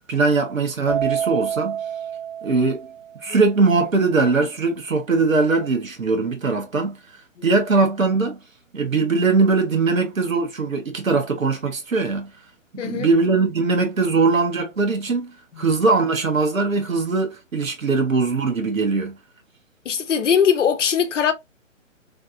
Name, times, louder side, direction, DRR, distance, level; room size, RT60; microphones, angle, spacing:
voice 1, 0.1-1.8 2.4-2.9 3.2-7.0 7.4-8.4 8.7-12.3 12.7-19.2, right 4 dB, 85° right, 1.3 m, -21 dB
Keyboard (musical), 0.9-3.4, right 8 dB, 10° left, 0.8 m, -28 dB
voice 2, 12.8-13.1 15.5-15.6 19.8-21.3, left 7 dB, 65° left, 0.8 m, -20 dB
3.3 x 2.5 x 2.5 m
figure-of-eight pair, 135°, 39 cm